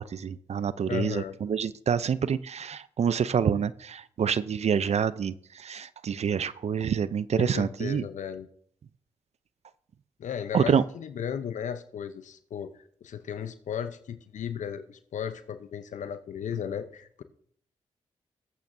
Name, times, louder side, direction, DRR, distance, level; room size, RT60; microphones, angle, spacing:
voice 1, 0.0-8.1 10.5-10.8, right 7 dB, 55° right, 16 dB, 0.6 m, -27 dB
voice 2, 0.9-1.4 7.4-8.5 10.2-12.7 13.0-17.2, left 8 dB, 70° left, 11 dB, 0.8 m, -35 dB
20.5 x 8.4 x 2.7 m, 0.63 s
supercardioid pair, 50°, 13 cm